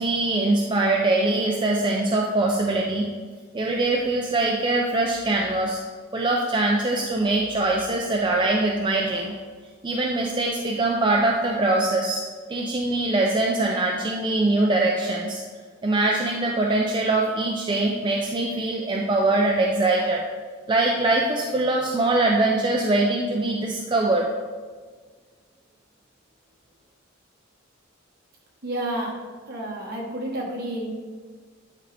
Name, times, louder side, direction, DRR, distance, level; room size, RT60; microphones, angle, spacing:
voice 1, 0.0-3.1 3.5-5.8 6.1-9.3 9.8-12.2 12.5-15.4 15.8-20.2 20.7-24.3, right 2 dB, 25° right, -1 dB, 0.5 m, -23 dB
voice 2, 28.6-29.1 29.5-30.9, right 1 dB, 50° right, -2 dB, 1.4 m, -30 dB
10.5 x 3.9 x 3.4 m, 1.5 s
head